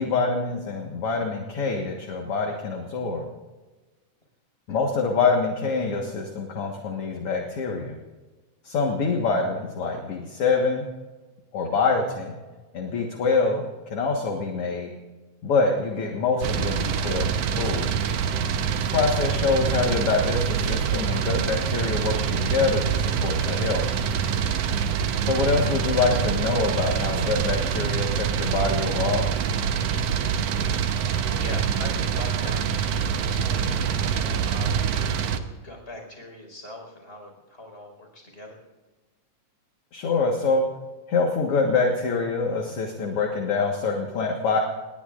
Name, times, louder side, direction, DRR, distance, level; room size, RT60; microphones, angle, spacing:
voice 1, 0.0-3.3 4.7-8.0 8.6-10.9 11.5-12.4 12.7-14.9 15.4-17.9 18.9-23.9 25.2-29.3 39.9-40.7 41.1-44.6, left 4 dB, 55° left, 1 dB, 2.2 m, -25 dB
sound 1, 16.4-35.4, right 7 dB, 65° right, 1.8 m, -25 dB
voice 2, 31.3-34.7 35.1-38.6, left 1 dB, 20° left, 2 dB, 5.0 m, -41 dB
27.5 x 20.0 x 2.5 m, 1.3 s
omnidirectional pair, 3.6 m